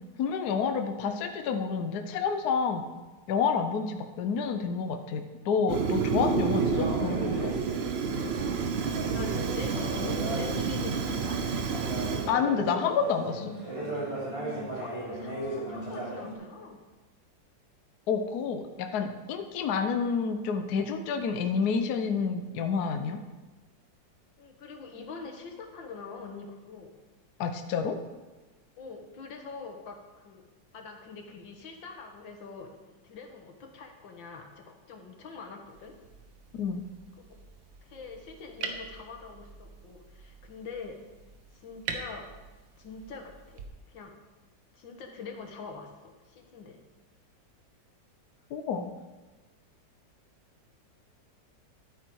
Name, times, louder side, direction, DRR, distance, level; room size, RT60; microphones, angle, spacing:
voice 1, 0.2-2.9 3.3-7.5 12.3-13.5 18.1-23.2 27.4-28.0 36.5-36.8 48.5-48.9, left 6 dB, 65° left, 6 dB, 1.2 m, -29 dB
Fire, 5.7-12.3, right 5 dB, 55° right, 0.7 m, -29 dB
sound 1, 6.2-16.3, right 1 dB, 15° right, 2.9 m, -37 dB
voice 2, 9.1-11.4 14.5-16.8 24.4-26.9 28.8-30.4 30.7-36.0 37.8-41.0 41.5-42.3 42.8-43.6 43.9-44.1 44.7-46.8, left 4 dB, 90° left, 3 dB, 2.1 m, -44 dB
sound 2, 35.6-43.7, right 5 dB, 75° right, 1.8 m, -44 dB
12.0 x 8.7 x 4.7 m, 1.2 s
omnidirectional pair, 2.0 m